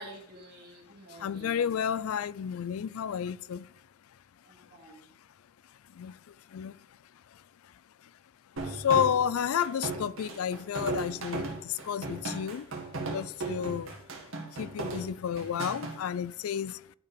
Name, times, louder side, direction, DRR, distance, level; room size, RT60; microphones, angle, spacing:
voice 1, 0.0-1.8 4.4-5.1 13.8-14.0, right 1 dB, 50° right, 2.6 m, -49 dB
voice 2, 1.2-3.7 6.0-6.1 6.5-6.7 8.6-12.7 13.1-13.9 14.5-16.8, left 8 dB, 80° left, 0.4 m, -31 dB
sound 1, 8.6-15.9, right 3 dB, 70° right, 1.9 m, -36 dB
11.0 x 4.7 x 5.2 m
head